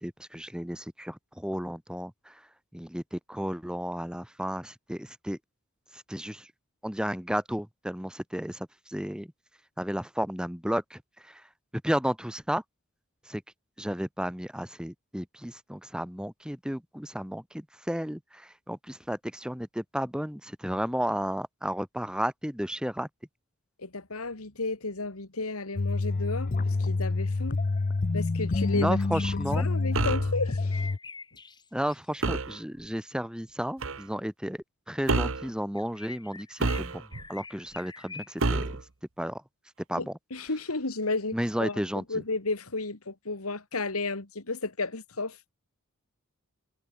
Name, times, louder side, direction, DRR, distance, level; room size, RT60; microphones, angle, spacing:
voice 1, 0.0-2.4 2.7-5.4 5.9-6.5 6.8-9.3 9.8-11.4 11.8-12.6 13.3-13.4 13.8-23.1 28.7-29.7 31.7-37.0 37.3-38.7 39.2-39.4 39.9-40.1 41.3-42.2, equal, 5° right, 1.9 m, -33 dB
voice 2, 23.8-27.6 28.1-29.0 29.5-30.8 40.0-45.4, left 3 dB, 90° left, 2.4 m, -33 dB
sound 1, 25.8-31.0, left 3 dB, 40° left, 0.5 m, -27 dB
sound 2, 29.9-30.3 32.2-32.6 33.8-34.0 35.1-35.5 36.6-37.3 38.4-38.8, right 3 dB, 65° right, 1.2 m, -28 dB
sound 3, 30.4-32.3 35.8-38.7, left 4 dB, 20° left, 6.6 m, -46 dB
head